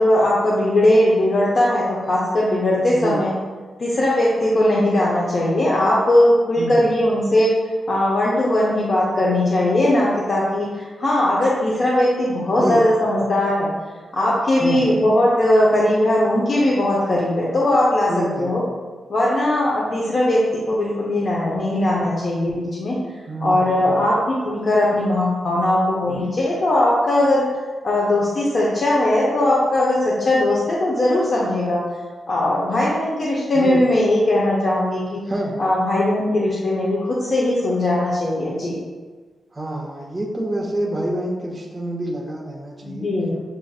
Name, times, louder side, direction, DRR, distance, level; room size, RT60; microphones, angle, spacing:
voice 1, 0.0-3.3 3.8-7.5 7.9-13.7 14.1-18.1 18.4-18.6 19.1-23.0 23.4-27.5 27.8-31.8 32.3-35.2 35.6-38.8 42.8-43.4, left 1 dB, 40° left, -5 dB, 0.6 m, -19 dB
voice 2, 14.6-15.0 18.1-18.6 23.3-23.9 33.5-33.8 35.3-35.6 39.5-43.1, right 1 dB, 15° right, -4 dB, 0.4 m, -27 dB
7.1 x 2.5 x 2.3 m, 1.4 s
wide cardioid pair, 170°, 0 cm